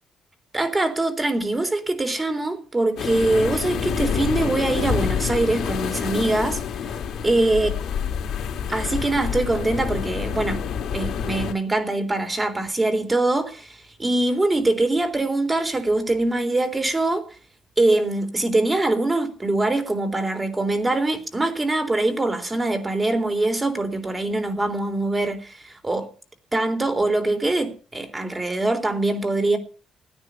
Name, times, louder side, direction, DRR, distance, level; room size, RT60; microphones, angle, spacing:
voice 1, 0.5-6.6 7.2-7.7 8.7-10.6 10.9-17.3 17.8-26.1 26.5-29.6, right 2 dB, 20° right, 3.6 m, -23 dB
sound 1, 3.0-11.5, left 7 dB, 75° left, 2.5 m, -27 dB
17.0 x 9.8 x 7.0 m
cardioid pair, 90°, 0 cm